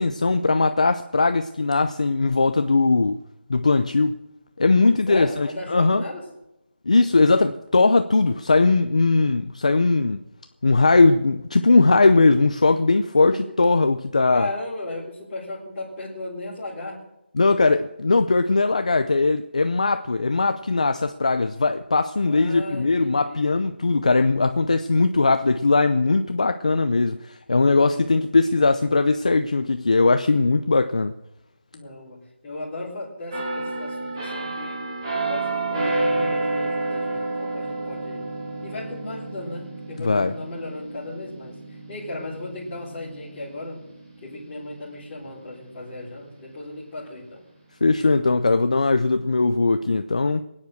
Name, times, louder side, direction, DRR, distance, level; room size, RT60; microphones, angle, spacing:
voice 1, 0.0-3.2 3.5-4.2 4.6-6.0 6.9-10.2 10.6-14.5 17.3-31.1 40.0-40.3 47.8-50.4, left 3 dB, 35° left, 0.6 m, -19 dB
voice 2, 5.1-6.2 14.3-17.0 22.2-23.5 31.7-34.8 35.2-38.3 38.6-41.6 41.9-43.8 44.2-47.4, left 2 dB, 10° left, 3.9 m, -35 dB
sound 1, 33.3-44.8 45.3-45.5, right 2 dB, 25° right, 3.1 m, -30 dB
23.0 x 9.6 x 6.4 m
figure-of-eight pair, 180°, 6 cm